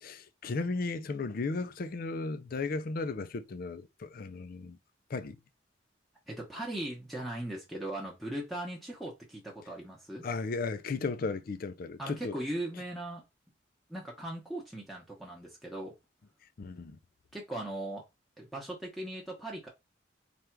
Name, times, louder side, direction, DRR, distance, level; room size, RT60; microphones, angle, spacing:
voice 1, 0.0-4.8 5.1-5.4 10.2-12.4 16.6-17.0, left 3 dB, 50° left, 0.4 m, -35 dB
voice 2, 6.3-10.3 12.0-13.2 13.9-15.9 17.3-18.0 18.4-19.7, right 1 dB, ahead, 0.9 m, -39 dB
3.4 x 2.4 x 4.4 m
head